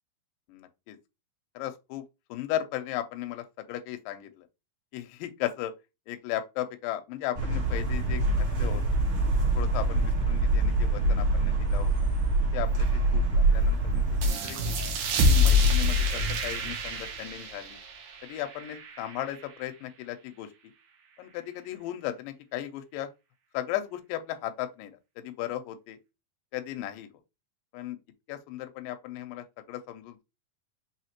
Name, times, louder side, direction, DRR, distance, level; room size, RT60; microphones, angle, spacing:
voice 1, 0.5-1.0 1.6-2.0 2.3-4.5 4.9-5.7 6.1-8.8 9.5-11.9 12.5-14.8 15.2-17.8 18.2-20.5 21.2-23.1 23.5-26.0 26.5-27.1 27.7-28.0 28.3-30.2, left 13 dB, 80° left, 2.2 m, -36 dB
sound 1, 7.4-14.3, right 2 dB, 50° right, 1.8 m, -25 dB
sound 2, 14.2-19.4, left 2 dB, 75° right, 1.9 m, -26 dB
5.7 x 3.0 x 2.9 m
omnidirectional pair, 4.2 m